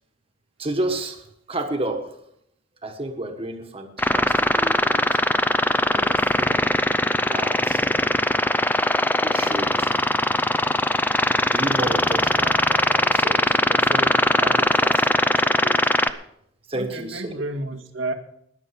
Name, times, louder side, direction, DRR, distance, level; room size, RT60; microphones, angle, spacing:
voice 1, 0.6-1.2 1.5-2.0 2.8-5.2 5.9-6.7 7.2-7.8 9.2-9.9 11.5-15.8 16.7-17.3, right 1 dB, 30° right, 4 dB, 1.4 m, -31 dB
sound 1, 4.0-16.1, left 1 dB, 10° left, 0.5 m, -20 dB
voice 2, 16.7-18.1, right 2 dB, 90° right, 3 dB, 1.9 m, -30 dB
20.0 x 7.5 x 5.8 m, 0.72 s
head